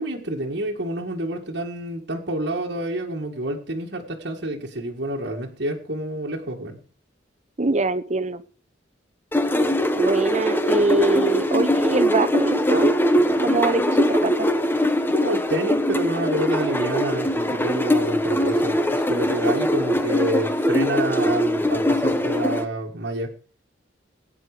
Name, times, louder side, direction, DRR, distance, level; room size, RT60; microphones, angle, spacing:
voice 1, 0.0-6.8 15.2-23.3, right 1 dB, 65° right, 0 dB, 1.8 m, -28 dB
voice 2, 7.6-8.4 10.0-12.9 13.4-14.5, right 3 dB, 40° right, 11 dB, 0.8 m, -23 dB
sound 1, 9.3-22.6, equal, 10° left, 1.0 m, -22 dB
17.0 x 9.3 x 5.0 m, 0.40 s
head